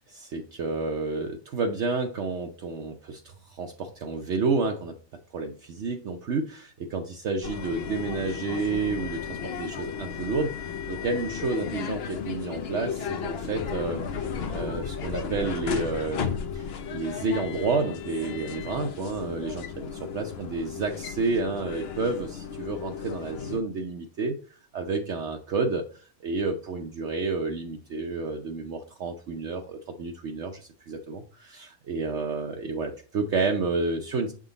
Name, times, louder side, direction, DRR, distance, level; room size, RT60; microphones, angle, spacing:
voice 1, 0.0-5.0 5.3-34.3, right 4 dB, 60° right, 3 dB, 0.9 m, -30 dB
sound 1, 7.4-23.6, left 6 dB, 55° left, 0.8 m, -34 dB
7.4 x 3.7 x 3.9 m, 0.41 s
omnidirectional pair, 1.5 m